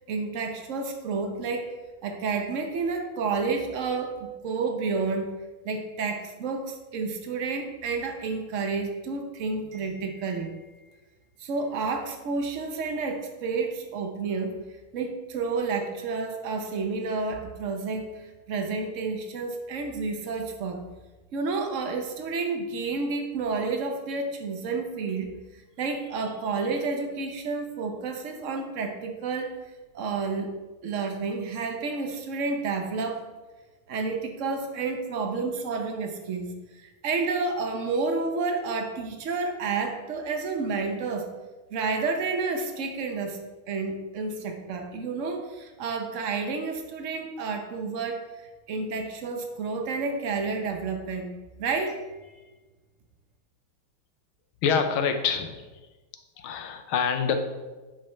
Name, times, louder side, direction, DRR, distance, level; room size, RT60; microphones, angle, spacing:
voice 1, 0.1-1.7 2.0-5.3 5.6-10.7 11.4-14.6 14.9-20.8 21.3-29.6 29.9-30.6 30.8-33.3 33.9-41.3 41.7-43.4 43.7-51.3 51.6-52.4, right 4 dB, 90° right, 4 dB, 0.6 m, -30 dB
voice 2, 54.6-55.7 56.4-57.3, left 6 dB, 75° left, 6 dB, 1.6 m, -26 dB
9.5 x 5.1 x 4.3 m, 1.2 s
omnidirectional pair, 2.4 m